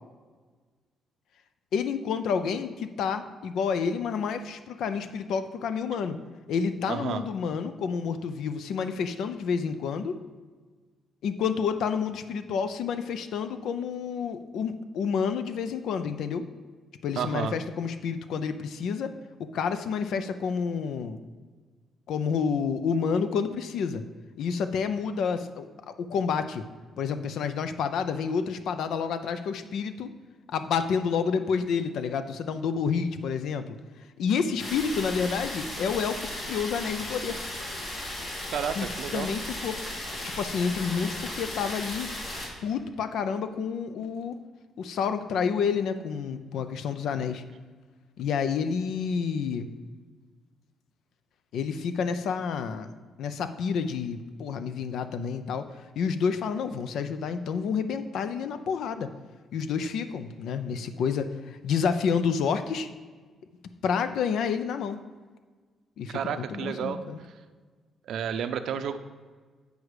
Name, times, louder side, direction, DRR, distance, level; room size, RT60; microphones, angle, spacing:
voice 1, 1.7-6.2 6.5-10.2 11.2-16.5 17.0-19.1 19.4-21.2 22.1-24.0 24.4-26.6 27.0-30.1 30.5-33.8 34.2-37.4 38.8-38.9 39.1-39.8 40.4-42.1 42.6-44.4 44.8-47.4 48.2-49.7 51.5-52.9 53.2-55.7 56.0-59.1 59.5-62.9 63.8-65.0 66.0-67.2, left 6 dB, 75° left, 10 dB, 0.5 m, -29 dB
voice 2, 6.9-7.2 17.2-17.5 38.5-39.3 66.1-67.0 68.1-69.0, right 8 dB, 70° right, 10 dB, 0.5 m, -31 dB
sound 1, 34.6-42.5, left 1 dB, 55° left, 2.1 m, -36 dB
8.2 x 4.9 x 4.8 m, 1.4 s
cardioid pair, 90°, 0 cm